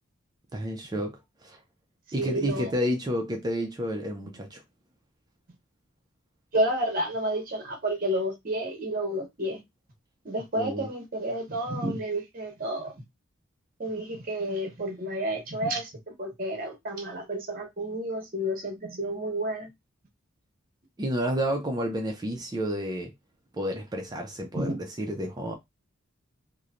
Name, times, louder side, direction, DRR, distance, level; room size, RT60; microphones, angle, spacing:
voice 1, 0.5-1.6 2.1-4.6 10.6-10.9 21.0-23.1 23.5-24.7 25.0-25.5, equal, 20° right, 0.4 m, -30 dB
voice 2, 2.2-2.7 6.5-9.6 10.2-12.9 13.8-19.7 24.5-24.8, right 1 dB, 45° right, 0.9 m, -30 dB
3.0 x 2.0 x 2.4 m
head